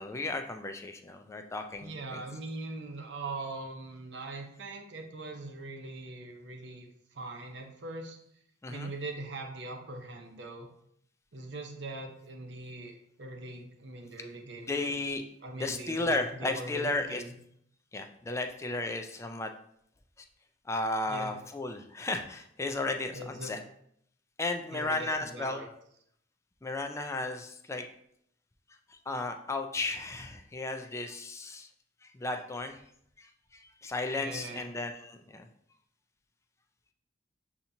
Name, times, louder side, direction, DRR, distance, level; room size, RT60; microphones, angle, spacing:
voice 1, 0.0-2.2 8.6-8.9 14.7-15.2 15.6-17.2 17.9-19.5 20.7-23.6 24.4-25.6 26.6-27.8 29.1-31.7 32.1-32.8 33.2-33.3 33.8-35.5, left 2 dB, 15° left, 5 dB, 0.3 m, -34 dB
voice 2, 1.8-8.2 8.7-10.7 11.3-12.9 13.2-15.0 15.4-17.3 21.1-21.3 23.1-23.5 24.7-25.7 34.2-34.7, right 2 dB, 65° right, 3 dB, 0.7 m, -41 dB
6.9 x 2.8 x 2.6 m, 0.69 s
head